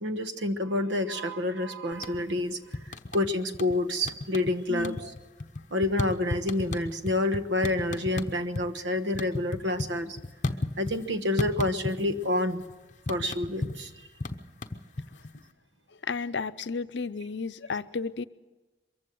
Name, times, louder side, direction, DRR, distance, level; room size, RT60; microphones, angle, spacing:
voice 1, 0.0-2.6 2.8-5.1 5.7-10.2 10.8-12.6 13.1-13.9, left 1 dB, 80° right, 9 dB, 1.3 m, -28 dB
sound 1, 1.9-2.4 2.7-3.8 4.0-4.5 4.8-8.7 9.0-11.1 11.4-12.2 12.5-15.4, left 2 dB, 40° left, 1.0 m, -33 dB
voice 2, 4.7-5.0 16.0-18.2, left 4 dB, 75° left, 13 dB, 0.7 m, -33 dB
23.0 x 15.0 x 7.8 m, 1.2 s
head